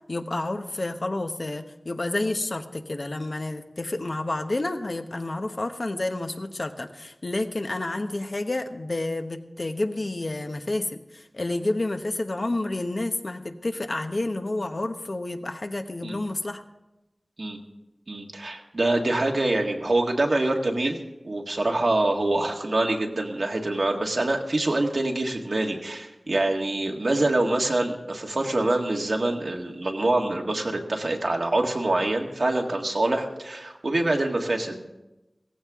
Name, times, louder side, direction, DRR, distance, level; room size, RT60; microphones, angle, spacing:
voice 1, 0.1-16.6, left 2 dB, 60° left, 6 dB, 1.1 m, -30 dB
voice 2, 18.1-21.0 21.2-34.9, right 2 dB, 70° right, 1 dB, 1.7 m, -25 dB
17.0 x 15.0 x 3.7 m, 0.98 s
wide cardioid pair, 55°, 0 cm